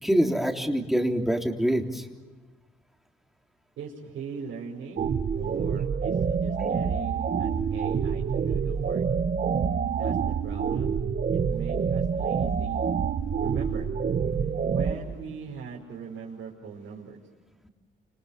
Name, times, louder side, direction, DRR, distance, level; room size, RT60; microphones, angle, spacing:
voice 1, 0.0-2.0 14.3-14.5, equal, ahead, 2 dB, 3.5 m, -25 dB
voice 2, 3.8-5.0 5.3-9.0 9.9-10.2 10.4-11.0 11.5-12.8 13.4-13.9 14.7-17.2, right 6 dB, 80° right, -4 dB, 5.6 m, -40 dB
sound 1, 5.0-14.9, right 6 dB, 50° right, 1.8 m, -27 dB
28.5 x 27.5 x 7.3 m, 1.3 s
cardioid pair, 90°, 20 cm